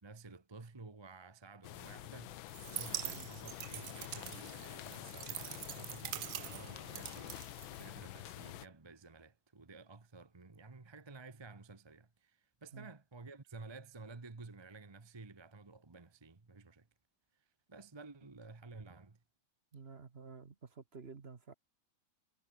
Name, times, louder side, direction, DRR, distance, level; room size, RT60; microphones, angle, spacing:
voice 1, 0.0-16.9 17.3-19.2, right 3 dB, 20° right, 0.8 m, -53 dB
sound 1, 1.6-8.7, left 15 dB, 90° left, 1.5 m, -48 dB
sound 2, 2.5-8.2, right 12 dB, 65° right, 0.9 m, -45 dB
voice 2, 19.7-21.5, right 5 dB, 35° right, 1.4 m, -51 dB
omnidirectional pair, 2.1 m